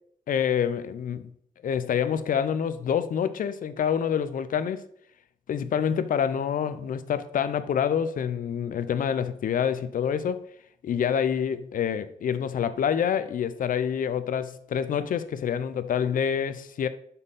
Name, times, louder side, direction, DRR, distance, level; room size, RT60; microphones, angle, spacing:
voice 1, 0.3-1.3 1.6-4.8 5.5-10.4 10.8-16.9, left 8 dB, 85° left, 0.4 m, -27 dB
5.4 x 4.1 x 5.4 m
cardioid pair, 50°, 14 cm